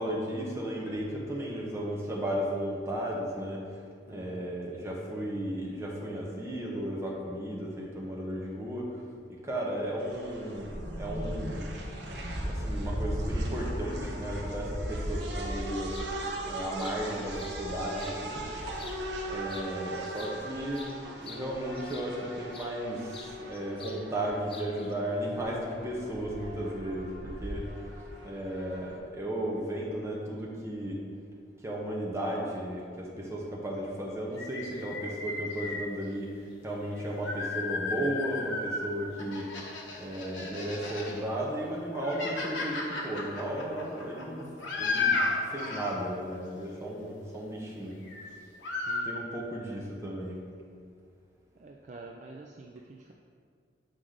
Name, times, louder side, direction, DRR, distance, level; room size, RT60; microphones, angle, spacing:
voice 1, 0.0-3.6 4.1-9.0 9.3-11.6 12.4-16.0 16.4-18.9 19.3-20.9 21.2-27.7 28.2-31.0 31.6-39.5 40.0-44.5 44.8-45.2 45.5-48.0 49.0-50.4, right 1 dB, 15° right, -3 dB, 1.0 m, -35 dB
voice 2, 4.1-4.5 48.8-49.2 49.6-49.8 51.6-53.1, right 3 dB, 40° right, 0 dB, 0.4 m, -48 dB
sound 1, 10.0-29.0, right 1 dB, 70° right, 0.9 m, -37 dB
sound 2, 15.9-16.1 16.5-18.2 18.7-19.2 19.5-22.7 23.1-24.0 24.3-24.9, left 4 dB, 30° left, 0.6 m, -48 dB
sound 3, 34.4-35.8 36.8-38.9 39.2-41.2 41.6-46.0 48.0-48.3 48.6-49.0, left 3 dB, 90° left, 1.1 m, -33 dB
7.8 x 4.9 x 3.8 m, 2.1 s
head